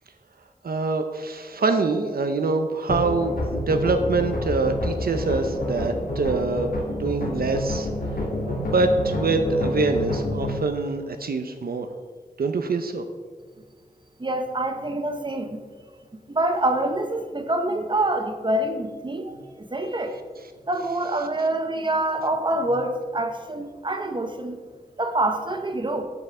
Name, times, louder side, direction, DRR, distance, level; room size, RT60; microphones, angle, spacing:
voice 1, 0.6-7.9 8.5-11.9 12.4-13.0, right 3 dB, 75° right, 7 dB, 0.7 m, -25 dB
sound 1, 2.9-10.6, left 1 dB, 70° left, 2.0 m, -28 dB
voice 2, 14.2-15.6 16.3-20.1 20.7-24.6 25.0-26.0, right 1 dB, 30° right, 6 dB, 1.0 m, -26 dB
7.9 x 5.5 x 6.1 m, 1.5 s
wide cardioid pair, 85°, 15 cm